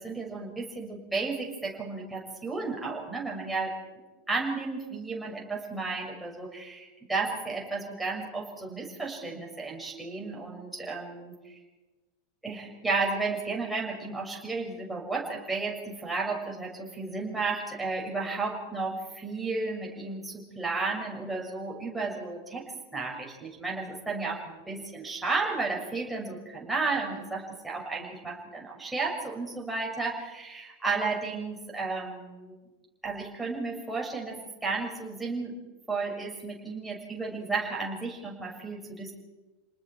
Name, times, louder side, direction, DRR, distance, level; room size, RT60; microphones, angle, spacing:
voice 1, 0.0-3.7 4.3-11.6 12.4-22.6 22.9-32.6 33.0-35.5 35.9-39.1, right 3 dB, 5° right, -1 dB, 6.6 m, -33 dB
29.5 x 20.0 x 4.8 m, 1.2 s
figure-of-eight pair, 85°, 0 cm